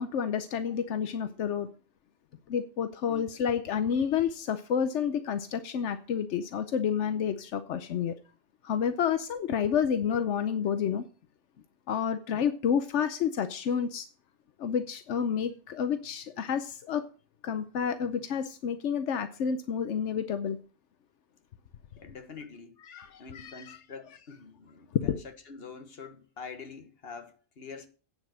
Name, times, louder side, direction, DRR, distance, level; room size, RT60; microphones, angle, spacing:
voice 1, 0.0-1.7 2.5-8.1 8.6-11.0 11.9-14.1 14.6-17.1 17.4-20.6 22.9-23.8 24.9-25.2, left 7 dB, 85° left, 1.0 m, -29 dB
voice 2, 22.0-22.8 23.2-27.9, left 5 dB, 60° left, 1.6 m, -45 dB
8.7 x 7.7 x 6.2 m
omnidirectional pair, 1.2 m